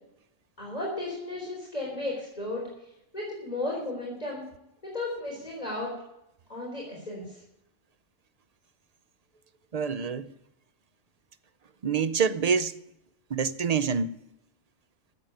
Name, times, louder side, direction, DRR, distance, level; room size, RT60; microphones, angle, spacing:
voice 1, 0.6-2.7 3.1-4.5 4.8-5.9 6.5-7.4, left 2 dB, 30° left, 4.0 m, -34 dB
voice 2, 9.7-10.3 11.8-12.8 13.3-14.2, right 6 dB, 50° right, 0.5 m, -26 dB
13.5 x 7.9 x 8.9 m
omnidirectional pair, 1.3 m